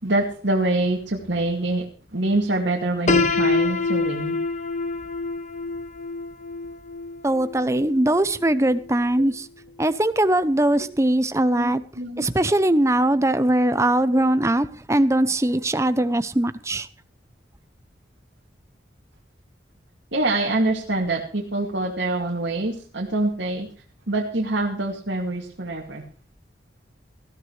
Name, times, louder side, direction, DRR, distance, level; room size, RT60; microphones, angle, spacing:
voice 1, 0.0-1.9 2.1-4.3 11.6-12.3 14.1-14.2 20.1-23.7 24.1-26.0, right 2 dB, 70° right, 2.5 m, -25 dB
Piano, 3.1-8.9, left 3 dB, 40° left, 0.9 m, -26 dB
voice 2, 7.2-9.5 9.8-11.8 12.2-16.9, right 1 dB, 15° right, 0.7 m, -21 dB
19.0 x 14.0 x 3.3 m
head